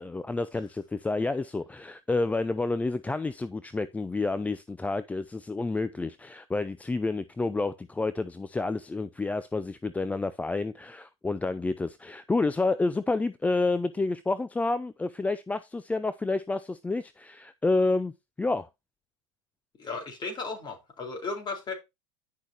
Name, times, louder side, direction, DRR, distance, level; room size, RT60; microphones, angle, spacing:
voice 1, 0.0-18.1 18.4-18.7, left 3 dB, 10° left, 0.5 m, -29 dB
voice 2, 19.8-21.8, left 3 dB, 30° left, 4.2 m, -35 dB
10.0 x 6.4 x 2.9 m
hypercardioid pair, 105°, 15 cm